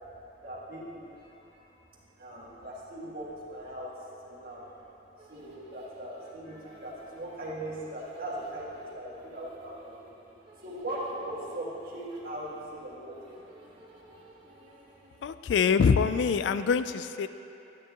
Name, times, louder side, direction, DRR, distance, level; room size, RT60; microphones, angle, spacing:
voice 1, 0.4-1.6 2.2-4.7 5.3-10.1 10.6-13.2 13.5-13.6, right 1 dB, 50° right, -6 dB, 1.9 m, -39 dB
sound 1, 5.2-15.7, right 1 dB, 25° right, 1.4 m, -56 dB
voice 2, 15.2-17.3, left 6 dB, 75° left, 12 dB, 0.3 m, -24 dB
12.0 x 9.4 x 2.9 m, 2.9 s
head